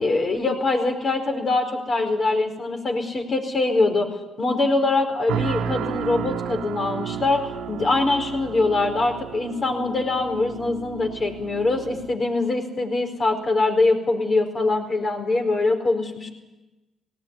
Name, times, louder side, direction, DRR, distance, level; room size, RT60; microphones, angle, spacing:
voice 1, 0.0-4.1 4.4-16.3, left 3 dB, 40° left, 4 dB, 4.7 m, -23 dB
sound 1, 5.3-12.1, right 9 dB, 85° right, 1.5 m, -32 dB
18.5 x 18.5 x 9.9 m, 1.1 s
cardioid pair, 90°, 0 cm